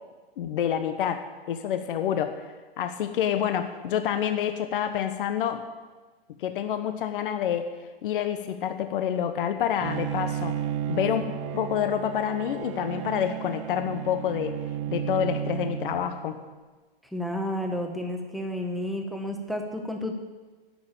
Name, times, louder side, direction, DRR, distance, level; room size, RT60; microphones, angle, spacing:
voice 1, 0.4-2.5 2.8-5.6 6.4-7.7 8.0-10.6 10.9-11.2 11.5-14.6 14.9-16.4, left 9 dB, 60° left, 8 dB, 1.1 m, -28 dB
Bowed string instrument, 9.8-16.5, right 10 dB, 30° right, 0.5 m, -33 dB
voice 2, 17.1-20.1, left 1 dB, ahead, 3 dB, 1.0 m, -31 dB
11.5 x 7.1 x 8.8 m, 1.3 s
hypercardioid pair, 145°, 30 cm